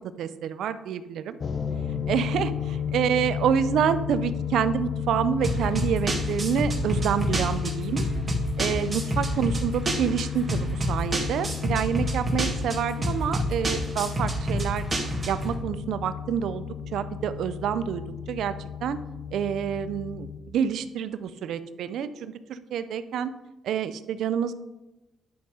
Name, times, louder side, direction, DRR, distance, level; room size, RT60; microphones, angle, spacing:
voice 1, 0.2-1.4 2.1-2.5 2.9-8.1 8.6-14.8 15.3-16.6 16.9-18.0 18.3-18.5 18.8-19.0 19.3-23.3 23.6-24.5, right 8 dB, 75° right, 12 dB, 0.6 m, -27 dB
sound 1, 1.4-20.4, left 8 dB, 45° left, 0.9 m, -33 dB
sound 2, 5.4-15.5, right 1 dB, 30° right, 1.9 m, -28 dB
10.5 x 5.5 x 4.9 m, 1.0 s
cardioid pair, 90°, 0 cm